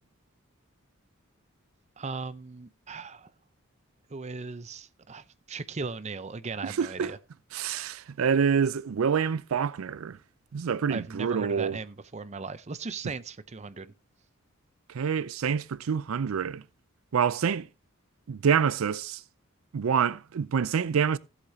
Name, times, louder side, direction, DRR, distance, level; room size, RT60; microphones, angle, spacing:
voice 1, 2.0-3.3 4.1-7.2 10.9-13.9, right 4 dB, 35° right, 0.6 m, -38 dB
voice 2, 6.6-7.1 7.5-10.2 10.5-11.8 14.9-16.6 17.1-17.7 18.3-19.2 19.7-21.2, right 7 dB, 80° right, 0.4 m, -27 dB
15.5 x 8.2 x 2.7 m
head